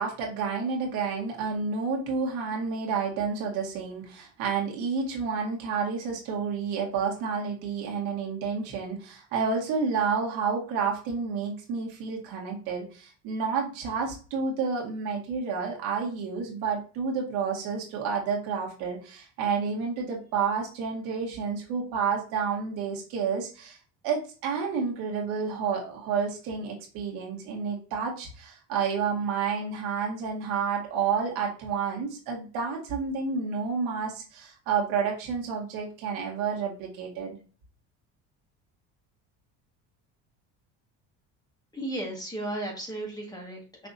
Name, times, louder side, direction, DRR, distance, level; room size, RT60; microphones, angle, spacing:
voice 1, 0.0-23.8 24.0-37.4, right 5 dB, 75° right, 0 dB, 2.0 m, -30 dB
voice 2, 41.7-43.9, right 1 dB, 10° left, -1 dB, 1.8 m, -35 dB
5.8 x 3.4 x 2.7 m, 0.36 s
cardioid pair, 120°, 37 cm